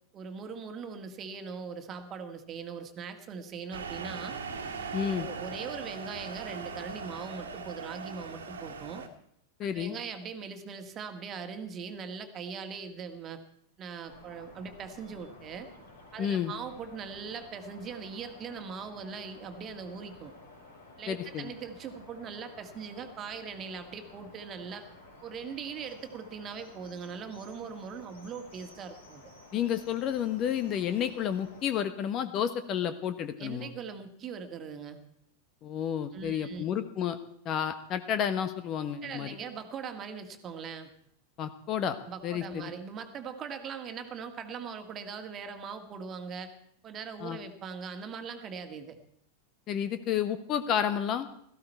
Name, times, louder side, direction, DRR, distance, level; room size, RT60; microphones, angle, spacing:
voice 1, 0.1-4.3 5.1-9.0 9.7-13.4 13.8-15.7 16.1-20.3 21.0-24.8 25.2-29.2 33.4-35.0 36.1-36.6 39.0-40.9 42.1-46.5 46.8-49.0, right 6 dB, 30° right, 6 dB, 1.8 m, -40 dB
sound 1, 3.7-9.1, right 5 dB, 70° right, 1.9 m, -39 dB
voice 2, 4.9-5.3 9.6-9.9 16.2-16.5 21.1-21.5 29.5-33.7 35.6-37.2 37.4-39.3 41.4-42.0 42.2-42.7 47.2-47.4 49.7-51.3, left 9 dB, 35° left, 11 dB, 1.1 m, -31 dB
sound 2, 14.0-31.7, left 2 dB, 70° left, 5.0 m, -53 dB
17.0 x 14.5 x 4.5 m, 0.70 s
figure-of-eight pair, 90°, 0 cm